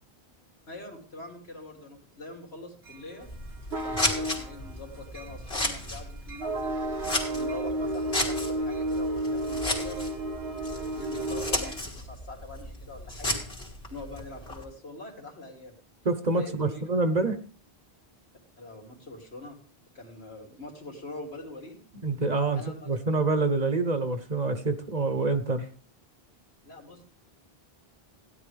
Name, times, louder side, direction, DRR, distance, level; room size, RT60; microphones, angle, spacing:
voice 1, 0.7-3.3 3.7-13.4 13.9-15.7 16.4-16.8 18.6-19.6 19.9-21.8 22.5-22.9 26.6-27.0, left 2 dB, 85° left, 1 dB, 3.3 m, -44 dB
sound 1, 2.9-11.8, right 1 dB, 80° right, 1.5 m, -33 dB
Scissors, 3.2-14.6, left 1 dB, 70° left, 3.0 m, -34 dB
voice 2, 16.0-17.4 22.0-25.7, right 3 dB, 45° right, 9 dB, 1.1 m, -26 dB
16.0 x 10.5 x 3.4 m, 0.40 s
omnidirectional pair, 1.0 m